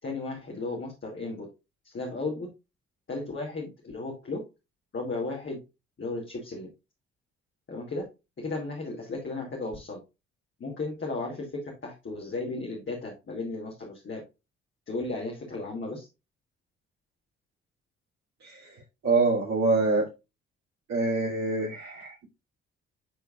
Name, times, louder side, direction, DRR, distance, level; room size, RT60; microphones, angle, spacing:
voice 1, 0.0-1.5 1.8-2.5 3.1-4.4 4.9-5.6 6.0-6.7 7.7-8.0 8.4-10.0 10.6-11.5 11.8-14.2 14.9-16.1, left 3 dB, 40° left, -2 dB, 2.5 m, -34 dB
voice 2, 18.4-20.1 20.9-22.3, right 3 dB, 55° right, -7 dB, 2.8 m, -26 dB
10.5 x 4.6 x 2.5 m, 0.25 s
figure-of-eight pair, 40°, 31 cm